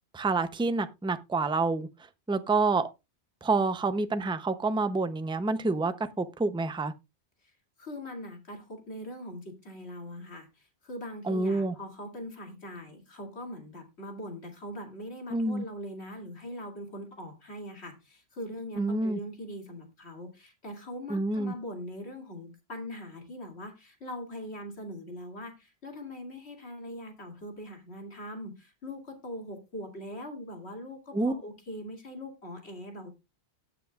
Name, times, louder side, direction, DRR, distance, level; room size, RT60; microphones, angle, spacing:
voice 1, 0.1-1.9 2.3-2.9 3.4-6.9 11.2-11.7 15.3-15.6 18.8-19.2 21.1-21.5 31.1-31.3, right 3 dB, 5° right, 0.5 m, -28 dB
voice 2, 7.8-33.1, equal, 65° left, 2.9 m, -41 dB
17.5 x 5.9 x 2.4 m
omnidirectional pair, 1.2 m